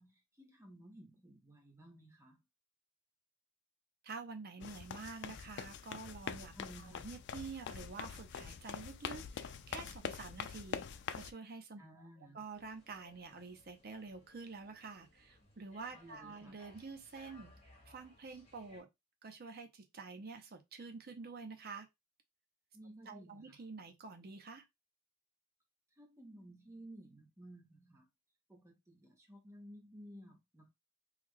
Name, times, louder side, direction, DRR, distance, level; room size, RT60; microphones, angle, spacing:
voice 1, 0.0-2.4 6.5-7.2 11.8-12.4 15.9-16.6 22.7-23.6 25.9-28.1 28.5-30.7, right 1 dB, 15° right, 0.7 m, -55 dB
voice 2, 4.0-6.5 6.8-11.8 12.3-17.5 17.8-18.9 19.2-21.9 23.1-24.6, right 4 dB, 50° right, 0.7 m, -48 dB
sound 1, 4.6-11.3, left 7 dB, 60° left, 0.4 m, -44 dB
sound 2, 12.5-18.8, left 1 dB, 30° left, 1.1 m, -63 dB
3.1 x 2.3 x 3.6 m
head